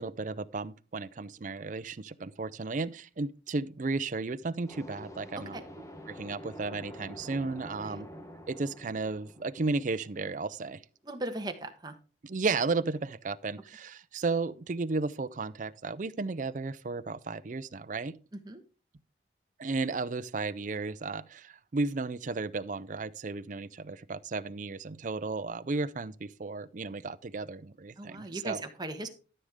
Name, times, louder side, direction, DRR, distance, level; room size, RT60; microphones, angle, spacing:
voice 1, 0.0-5.6 6.1-8.1 8.5-10.8 12.2-18.2 19.6-28.6, right 3 dB, 45° right, 0.5 m, -34 dB
sound 1, 4.7-10.3, equal, 15° left, 1.1 m, -47 dB
voice 2, 11.1-11.9 18.5-18.6 28.0-29.1, right 2 dB, 20° right, 1.2 m, -38 dB
13.0 x 6.5 x 3.6 m
head